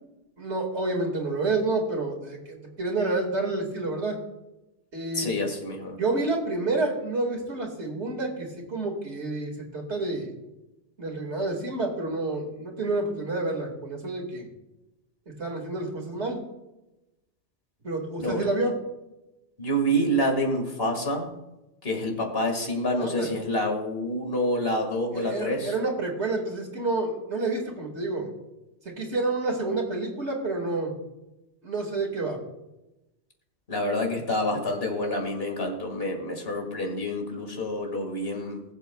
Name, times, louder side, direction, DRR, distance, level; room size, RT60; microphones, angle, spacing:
voice 1, 0.4-4.2 4.9-5.3 6.0-10.3 11.0-14.5 15.4-16.4 17.8-18.8 23.0-23.3 25.1-28.3 28.9-30.9 31.6-32.4, right 2 dB, 65° right, 1 dB, 2.3 m, -29 dB
voice 2, 5.1-6.0 18.2-18.5 19.6-21.3 21.8-25.7 33.7-38.6, equal, 55° left, 2 dB, 2.1 m, -27 dB
20.0 x 7.9 x 2.3 m, 0.98 s
omnidirectional pair, 1.2 m